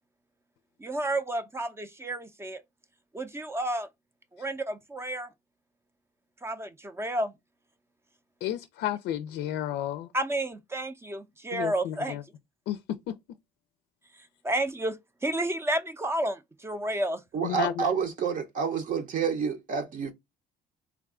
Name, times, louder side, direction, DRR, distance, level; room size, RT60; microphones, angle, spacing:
voice 1, 0.8-2.6 3.1-3.9 4.3-5.3 6.4-7.3 10.1-12.2 14.4-17.2, right 1 dB, 15° right, 0.4 m, -31 dB
voice 2, 8.4-10.1 11.5-12.2 12.7-13.2 17.4-17.8, left 11 dB, 80° left, 0.4 m, -32 dB
voice 3, 17.3-20.1, right 6 dB, 50° right, 0.7 m, -29 dB
3.4 x 2.3 x 3.6 m
cardioid pair, 110°, 17 cm